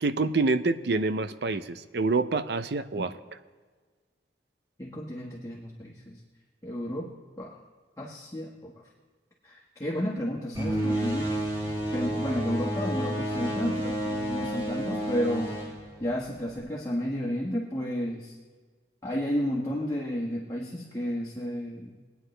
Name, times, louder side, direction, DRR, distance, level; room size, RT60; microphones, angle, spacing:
voice 1, 0.0-3.1, right 3 dB, 65° right, 12 dB, 0.6 m, -27 dB
voice 2, 4.8-6.2 6.6-7.1 7.4-7.6 8.0-8.7 9.4-11.3 11.9-15.6 16.0-18.3 19.0-21.9, equal, 20° left, -4 dB, 1.5 m, -32 dB
sound 1, 10.5-16.6, right 1 dB, 15° right, 3.9 m, -30 dB
22.5 x 9.3 x 3.3 m, 1.5 s
head